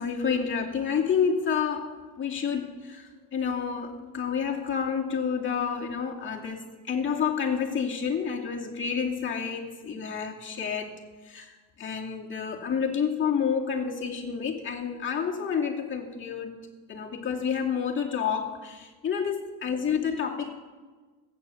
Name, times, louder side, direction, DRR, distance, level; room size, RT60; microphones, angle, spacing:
voice 1, 0.0-10.9 11.2-16.5 16.9-20.5, left 6 dB, 30° left, -1 dB, 2.6 m, -29 dB
16.0 x 9.3 x 7.1 m, 1.4 s
supercardioid pair, 110°, 39 cm